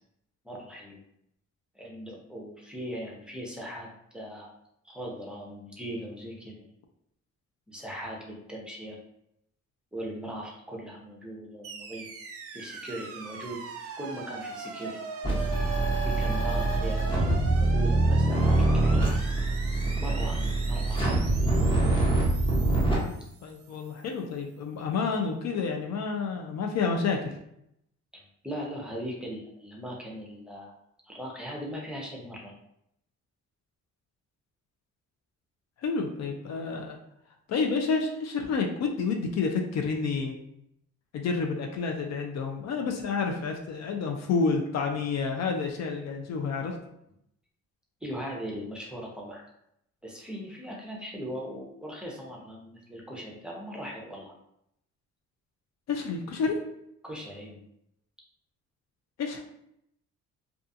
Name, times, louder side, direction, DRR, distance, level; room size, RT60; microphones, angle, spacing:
voice 1, 0.4-1.0 1.7-4.5 4.8-6.7 7.7-9.0 9.9-12.1 12.5-15.0 16.0-19.1 19.7-21.1 28.1-30.7 31.0-32.5 48.0-49.5 50.0-54.3 57.0-57.7, equal, 5° right, -2 dB, 0.7 m, -39 dB
sound 1, 11.6-23.9, right 5 dB, 50° right, 0.5 m, -40 dB
sound 2, 15.2-23.0, right 2 dB, 15° left, 1.0 m, -24 dB
voice 2, 23.4-27.3 35.8-37.0 37.5-40.3 41.1-46.8 55.9-56.6 59.2-59.4, left 4 dB, 60° left, 3 dB, 0.5 m, -29 dB
2.4 x 2.3 x 2.6 m, 0.76 s
cardioid pair, 90°, 30 cm